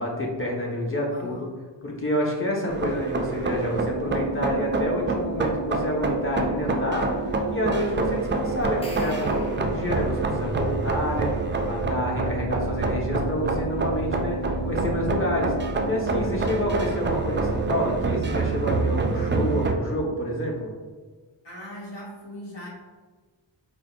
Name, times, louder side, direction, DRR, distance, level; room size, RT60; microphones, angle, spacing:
voice 1, 0.0-1.5 1.8-14.4 14.7-15.5 15.9-20.7, equal, 30° left, -2 dB, 1.0 m, -28 dB
voice 2, 1.1-1.5 12.2-12.6 16.2-16.6 21.4-22.7, equal, 70° left, -5 dB, 1.4 m, -41 dB
sound 1, 2.7-19.7, right 3 dB, 25° right, 0.3 m, -26 dB
sound 2, 8.6-10.2, left 1 dB, 15° left, 0.6 m, -45 dB
5.0 x 2.1 x 2.4 m, 1.4 s
cardioid pair, 40°, 44 cm